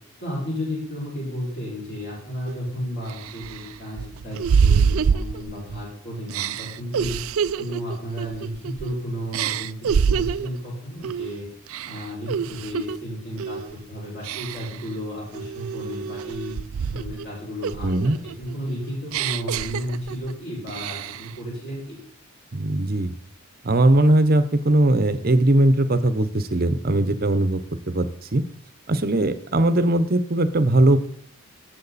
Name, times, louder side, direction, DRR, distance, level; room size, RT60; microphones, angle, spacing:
voice 1, 0.2-7.2 7.6-9.8 10.1-11.5 11.9-13.6 13.9-16.6 16.9-22.0 26.9-27.2, equal, 45° left, -5 dB, 5.8 m, -33 dB
sound 1, 2.5-2.6 3.1-5.8 6.3-8.9 9.3-10.6 11.0-11.3 11.7-13.0 13.4-13.7 14.2-14.8 15.3-17.3 17.6-20.3 20.7-21.3, right 6 dB, 70° right, 0.4 m, -26 dB
voice 2, 17.8-18.2 22.5-23.1 23.6-27.6 27.9-28.1 28.3-28.4 28.9-31.0, right 1 dB, 40° right, 12 dB, 0.8 m, -19 dB
16.5 x 7.7 x 4.1 m, 0.64 s
head